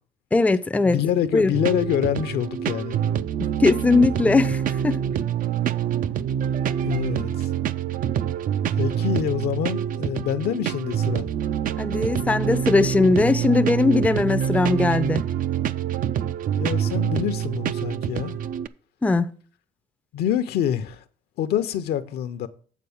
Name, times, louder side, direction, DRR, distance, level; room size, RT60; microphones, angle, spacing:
voice 1, 0.3-1.0 1.3-1.5 3.6-5.0 11.8-15.2 19.0-19.3, left 3 dB, 10° left, 0.5 m, -20 dB
voice 2, 0.8-3.0 6.8-7.5 8.7-11.3 16.6-18.4 20.1-21.0 21.4-22.5, left 9 dB, 70° left, 0.8 m, -26 dB
sound 1, 1.5-18.7, right 9 dB, 55° right, 0.5 m, -26 dB
8.4 x 4.2 x 7.1 m
cardioid pair, 110°, 17 cm